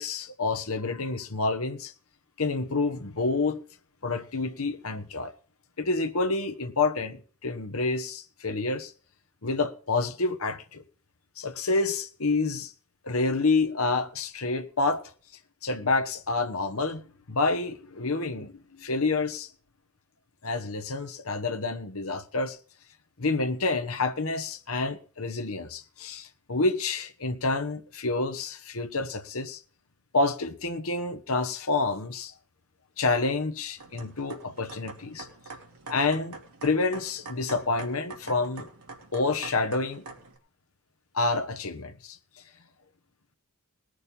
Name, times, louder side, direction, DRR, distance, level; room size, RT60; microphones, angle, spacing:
voice 1, 0.0-1.9 2.4-3.6 4.0-5.3 5.8-8.9 9.4-10.8 11.4-12.7 13.0-15.0 15.6-17.0 17.3-19.5 20.4-22.6 23.2-29.6 30.1-32.3 33.0-35.3 35.9-36.4 36.6-38.7 39.1-40.0 41.1-42.2, left 3 dB, 70° left, 1.2 m, -28 dB
sound 1, 33.8-40.4, right 3 dB, 80° right, 2.7 m, -45 dB
19.5 x 6.6 x 5.5 m
head